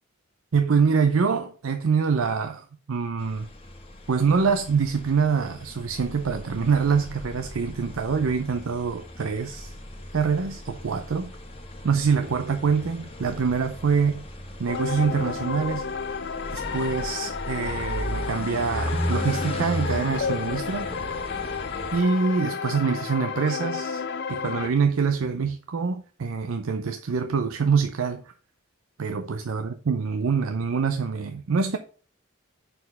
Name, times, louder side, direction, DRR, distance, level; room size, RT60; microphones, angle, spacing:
voice 1, 0.5-3.5 4.1-9.7 10.1-11.3 11.8-14.2 14.6-15.9 16.5-20.9 21.9-24.0 24.3-28.2 29.0-31.8, right 5 dB, 90° right, 0.6 m, -25 dB
sound 1, 3.2-22.0, equal, 30° left, 1.3 m, -36 dB
sound 2, 14.7-24.7, left 5 dB, 55° left, 0.6 m, -31 dB
6.5 x 4.4 x 5.4 m
head